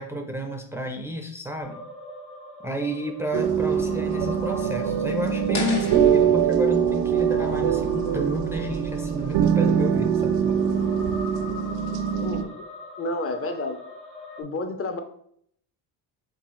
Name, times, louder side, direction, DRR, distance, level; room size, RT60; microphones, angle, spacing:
voice 1, 0.0-1.8 2.6-10.6, equal, 5° right, 3 dB, 0.4 m, -31 dB
sound 1, 1.6-14.4, equal, 90° left, 1.6 m, -41 dB
sound 2, 3.3-12.4, right 8 dB, 85° right, 0.5 m, -23 dB
sound 3, 5.5-8.6, left 4 dB, 65° left, 1.5 m, -37 dB
voice 2, 12.2-12.6 13.0-13.8 14.4-15.0, left 2 dB, 30° left, 7 dB, 0.7 m, -30 dB
4.5 x 3.6 x 3.1 m, 0.67 s
cardioid pair, 95°, 43 cm